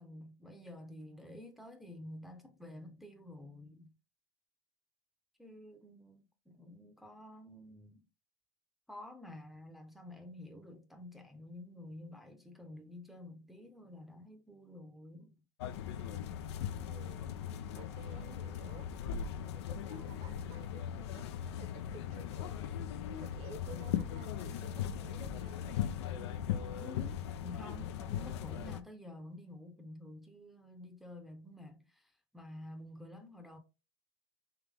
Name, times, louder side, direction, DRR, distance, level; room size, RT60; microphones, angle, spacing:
voice 1, 0.0-3.9 5.4-8.0 8.9-15.3 26.8-33.6, left 1 dB, ahead, 0.7 m, -50 dB
sound 1, 15.6-28.8, left 9 dB, 80° left, 0.5 m, -39 dB
voice 2, 16.9-18.9 19.5-22.8 23.2-25.9, right 4 dB, 50° right, 1.0 m, -54 dB
3.7 x 2.9 x 3.4 m
supercardioid pair, 105°, 14 cm